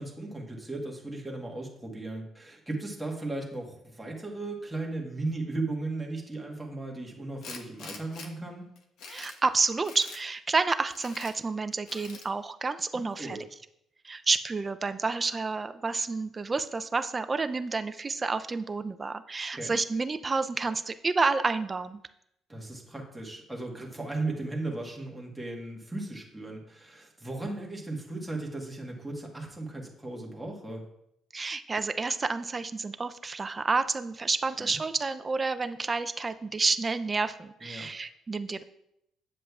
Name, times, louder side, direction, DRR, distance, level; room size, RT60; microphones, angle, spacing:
voice 1, 0.0-8.7 12.9-13.4 19.5-19.8 22.5-30.8 34.6-34.8 37.6-37.9, right 2 dB, 5° right, -1 dB, 1.3 m, -36 dB
Tools, 7.4-8.3 8.8-9.4 9.8-10.2 10.9-11.3 11.9-12.3, left 4 dB, 75° left, 0.9 m, -44 dB
voice 2, 9.1-13.4 14.0-22.0 31.3-38.6, right 4 dB, 20° right, 10 dB, 0.4 m, -29 dB
7.9 x 7.4 x 2.3 m, 0.77 s
cardioid pair, 130°, 0 cm